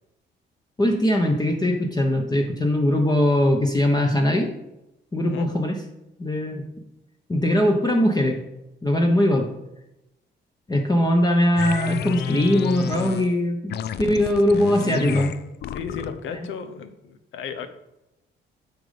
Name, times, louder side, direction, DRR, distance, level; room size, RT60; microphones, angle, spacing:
voice 1, 0.8-4.5 5.1-5.8 6.2-6.6 7.3-8.4 8.8-9.5 10.7-13.7 14.0-15.3 16.3-16.4, left 1 dB, 20° left, 2 dB, 1.0 m, -21 dB
sound 1, 11.6-13.4 13.7-16.3, left 8 dB, 60° left, 0.5 m, -30 dB
voice 2, 14.5-15.3 15.7-17.7, left 6 dB, 80° left, 9 dB, 0.9 m, -35 dB
7.9 x 5.2 x 5.1 m, 0.92 s
cardioid pair, 90°, 20 cm